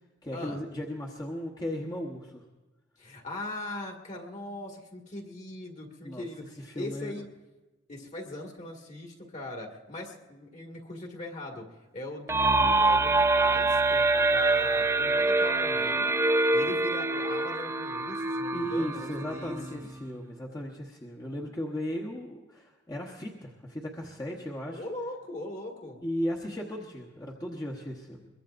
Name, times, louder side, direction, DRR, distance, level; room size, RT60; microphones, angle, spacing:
voice 1, 0.2-2.4 6.0-7.2 18.5-24.8 26.0-28.3, equal, 20° left, -3 dB, 1.1 m, -36 dB
voice 2, 3.0-7.3 7.9-11.7 11.9-16.1 16.5-19.9 24.7-26.0, left 1 dB, 40° left, 0 dB, 2.0 m, -40 dB
sound 1, 12.3-19.9, right 2 dB, 15° right, 0.4 m, -25 dB
22.5 x 22.5 x 2.6 m, 1.1 s
head